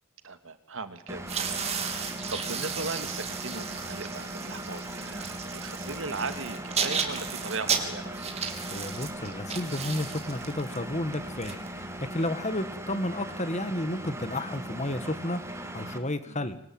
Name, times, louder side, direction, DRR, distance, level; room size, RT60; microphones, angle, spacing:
voice 1, 0.2-8.2 16.3-16.5, right 3 dB, 60° right, 9 dB, 2.6 m, -38 dB
Engine, 1.1-16.0, right 1 dB, 10° right, 2.7 m, -39 dB
sound 1, 1.2-12.2, right 6 dB, 30° right, 3.4 m, -34 dB
voice 2, 8.7-11.9 12.1-15.4 15.7-16.6, left 1 dB, 30° left, 11 dB, 1.9 m, -32 dB
26.5 x 24.0 x 9.0 m, 0.74 s
head